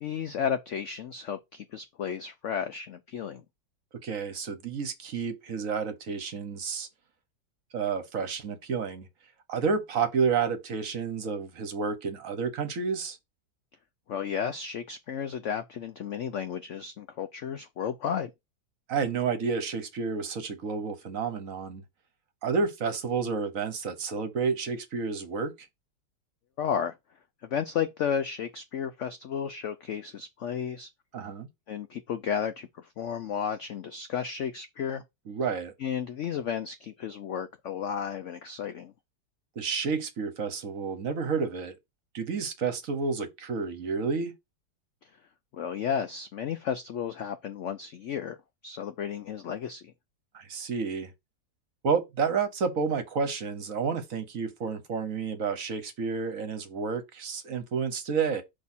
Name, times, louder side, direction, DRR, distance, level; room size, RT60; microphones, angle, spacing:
voice 1, 0.0-3.4 14.1-18.3 26.6-26.9 27.4-30.9 31.7-35.0 35.8-38.9 45.5-48.4 48.6-49.8, left 8 dB, 70° left, 0.7 m, -33 dB
voice 2, 4.0-6.9 7.7-9.1 9.5-13.2 18.9-21.8 22.4-25.7 31.1-31.5 35.3-35.7 39.6-41.7 42.1-44.3 50.3-51.1 51.8-58.4, right 5 dB, 55° right, 1.2 m, -30 dB
6.2 x 2.9 x 5.5 m
omnidirectional pair, 1.9 m